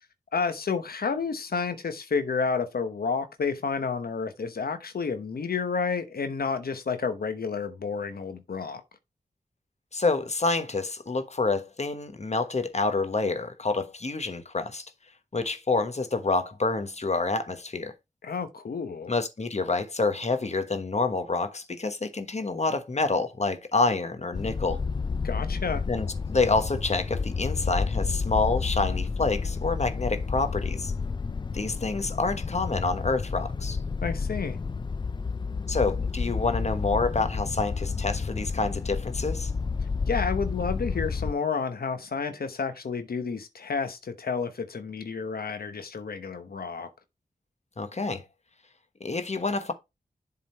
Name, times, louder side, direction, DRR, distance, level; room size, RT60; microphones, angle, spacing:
voice 1, 0.3-8.8 18.2-19.1 25.2-25.8 34.0-34.6 40.1-46.9, left 5 dB, 70° left, 0.9 m, -30 dB
voice 2, 9.9-14.9 15.3-17.9 19.1-24.8 25.9-30.9 31.5-33.8 35.7-39.5 47.8-48.2 49.0-49.7, left 3 dB, 45° left, 1.2 m, -28 dB
sound 1, 24.3-41.3, left 4 dB, 30° left, 0.3 m, -30 dB
7.5 x 3.8 x 4.3 m
cardioid pair, 55°, 16 cm